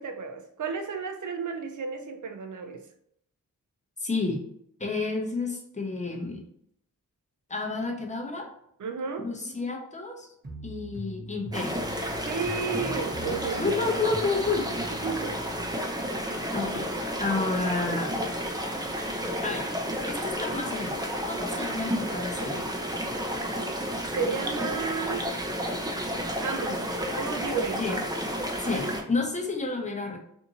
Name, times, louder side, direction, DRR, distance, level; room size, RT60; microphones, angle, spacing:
voice 1, 0.0-2.8 8.8-9.3 12.2-13.8 15.0-15.4 24.1-25.3 26.4-27.8, right 5 dB, 60° right, 0.5 m, -32 dB
voice 2, 4.0-4.4 4.8-6.4 7.5-8.5 9.2-10.3 10.6-11.8 13.6-14.7 16.5-16.9 17.2-18.1 19.4-19.7 20.0-21.0 21.2-22.7 27.8-28.0 28.6-30.2, left 3 dB, 20° left, 0.7 m, -30 dB
sound 1, 10.4-15.8, equal, 30° right, 1.0 m, -42 dB
sound 2, 11.5-29.0, equal, 10° right, 0.5 m, -31 dB
2.7 x 2.5 x 2.8 m
cardioid pair, 60°, 35 cm